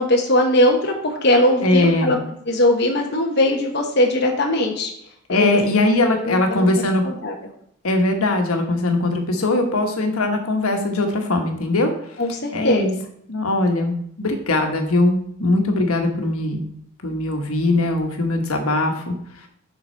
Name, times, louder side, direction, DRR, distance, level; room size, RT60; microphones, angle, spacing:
voice 1, 0.0-2.2 2.5-4.9 5.3-5.6 6.2-6.7 7.0-7.3 12.2-12.9, left 1 dB, 50° left, 1 dB, 1.0 m, -19 dB
voice 2, 1.6-2.1 5.3-7.0 7.8-11.9 12.5-12.9 13.3-16.6 17.0-19.1, left 2 dB, 90° left, 4 dB, 1.3 m, -20 dB
7.1 x 5.3 x 4.5 m, 0.70 s
head